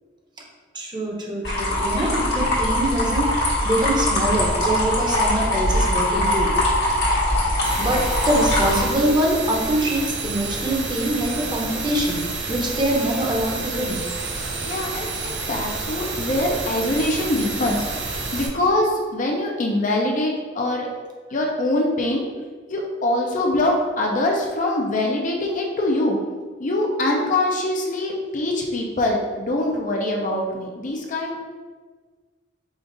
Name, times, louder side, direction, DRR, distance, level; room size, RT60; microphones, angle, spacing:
voice 1, 0.7-3.3 3.6-6.6 7.1-12.2 12.5-14.0, right 1 dB, 25° right, -2 dB, 0.8 m, -24 dB
sound 1, 1.4-8.8, left 1 dB, 65° left, 1.2 m, -22 dB
sound 2, 7.6-18.5, right 3 dB, 75° right, 0.7 m, -29 dB
voice 2, 14.6-17.9 18.3-20.9 21.3-22.2 22.7-26.2 26.6-31.4, left 1 dB, 45° left, 0 dB, 0.6 m, -23 dB
5.0 x 2.4 x 3.8 m, 1.5 s
head